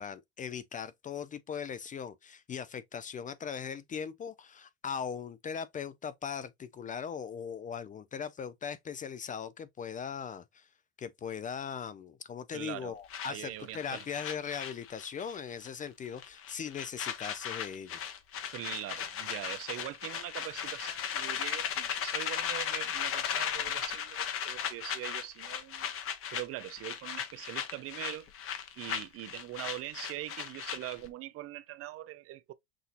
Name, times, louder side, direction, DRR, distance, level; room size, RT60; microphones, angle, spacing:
voice 1, 0.0-10.7 11.0-18.0, left 7 dB, 25° left, 0.4 m, -39 dB
voice 2, 12.5-12.9 13.2-14.0 18.5-25.9 26.3-28.3 28.8-32.5, right 15 dB, 45° right, 0.5 m, -42 dB
sound 1, 13.1-15.4 15.6-15.9 16.2-31.1, left 8 dB, 45° left, 1.0 m, -37 dB
6.1 x 2.7 x 2.5 m
supercardioid pair, 100°, 32 cm